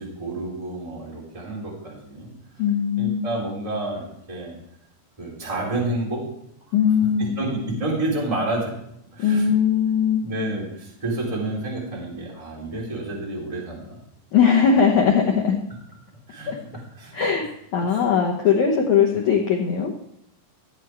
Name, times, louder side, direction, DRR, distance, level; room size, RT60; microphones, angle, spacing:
voice 1, 0.0-2.3 3.0-4.6 5.2-6.3 7.2-8.7 9.1-9.5 10.2-14.0 16.3-16.5 17.0-17.1 17.7-18.0, right 2 dB, 10° right, -4 dB, 2.6 m, -29 dB
voice 2, 2.6-3.3 6.7-7.4 9.2-10.3 14.3-15.6 16.5-16.6 17.1-19.9, left 7 dB, 85° left, -1 dB, 1.7 m, -20 dB
15.0 x 8.6 x 4.6 m, 0.75 s
omnidirectional pair, 5.1 m